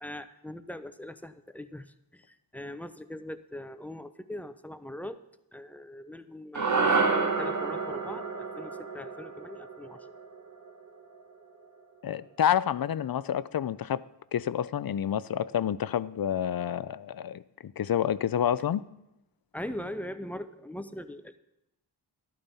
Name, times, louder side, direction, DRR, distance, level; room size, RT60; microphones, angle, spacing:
voice 1, 0.0-1.9 2.1-2.3 2.5-5.2 5.5-10.0 19.5-21.4, left 1 dB, 5° left, 0.6 m, -41 dB
sound 1, 6.5-11.0, right 4 dB, 45° right, 1.2 m, -29 dB
voice 2, 12.0-14.0 14.3-18.8, left 9 dB, 60° left, 0.5 m, -29 dB
12.5 x 12.5 x 4.1 m
wide cardioid pair, 85°, 42 cm